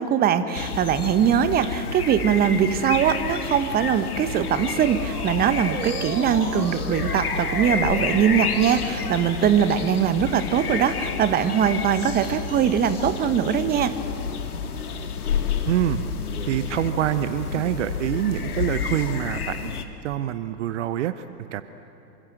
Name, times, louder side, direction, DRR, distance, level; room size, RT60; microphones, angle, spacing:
voice 1, 0.0-13.9, right 8 dB, 20° right, 11 dB, 1.2 m, -21 dB
sound 1, 0.5-19.8, left 6 dB, 65° left, 2.2 m, -30 dB
Motor vehicle (road) / Siren, 3.9-9.8, right 6 dB, 75° right, 1.9 m, -36 dB
voice 2, 15.7-16.0 16.4-19.7 20.0-21.2 21.5-21.6, right 12 dB, 45° right, 12 dB, 1.0 m, -25 dB
28.0 x 25.5 x 7.8 m, 3.0 s
figure-of-eight pair, 105°, 48 cm